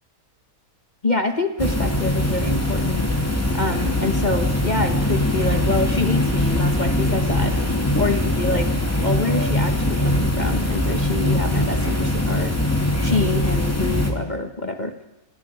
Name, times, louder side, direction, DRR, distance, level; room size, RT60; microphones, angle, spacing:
voice 1, 1.0-3.1 3.5-7.6 8.0-8.7 9.0-12.6 13.0-15.1, left 2 dB, 30° left, 6 dB, 1.4 m, -26 dB
sound 1, 1.6-14.1, left 1 dB, 10° left, 2.5 m, -22 dB
26.0 x 21.5 x 4.9 m, 0.99 s
omnidirectional pair, 1.6 m